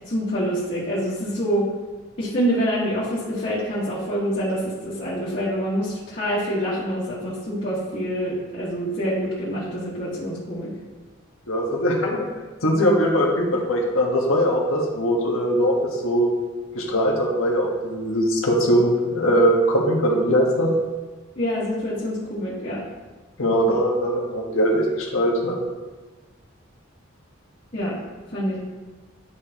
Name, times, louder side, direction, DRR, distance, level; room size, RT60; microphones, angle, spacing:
voice 1, 0.1-1.6 2.2-10.7 21.4-22.8 27.7-28.0 28.3-28.6, equal, 45° left, -10 dB, 1.8 m, -26 dB
voice 2, 11.5-12.3 12.6-16.3 16.7-20.7 23.4-25.6, equal, 90° left, -1 dB, 1.6 m, -21 dB
10.5 x 5.1 x 3.0 m, 1.3 s
head